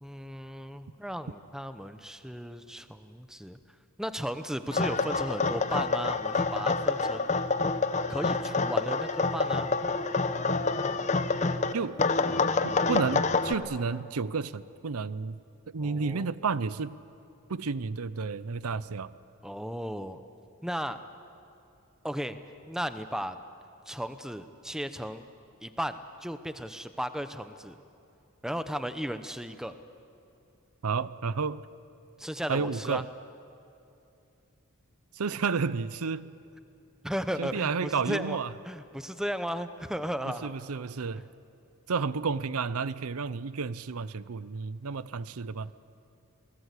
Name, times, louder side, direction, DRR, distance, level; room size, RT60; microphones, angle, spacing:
voice 1, 0.0-3.6 4.0-7.3 8.1-9.7 15.8-16.3 19.4-20.2 20.6-21.0 22.0-22.4 22.7-23.4 23.9-25.2 25.6-27.8 28.4-29.8 32.2-33.0 37.0-38.4 38.6-40.5 41.2-41.3, equal, 5° right, 10 dB, 0.8 m, -35 dB
sound 1, 4.7-11.7 12.0-13.5, left 3 dB, 35° left, 0.8 m, -27 dB
voice 2, 12.6-15.4 15.7-17.0 17.5-19.1 30.8-31.6 32.5-33.0 35.1-36.3 37.4-38.5 40.4-41.2 41.9-45.7, right 5 dB, 90° right, 16 dB, 0.7 m, -31 dB
28.5 x 19.5 x 8.3 m, 2.7 s
head